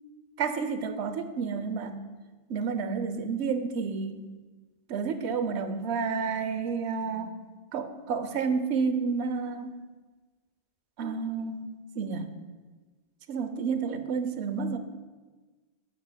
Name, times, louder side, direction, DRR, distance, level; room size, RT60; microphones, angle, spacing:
voice 1, 0.4-2.0 2.5-4.3 4.9-7.5 7.7-9.7 11.0-12.3 13.3-14.8, right 5 dB, 80° right, 10 dB, 0.9 m, -30 dB
9.4 x 8.5 x 2.2 m, 1.3 s
omnidirectional pair, 1.1 m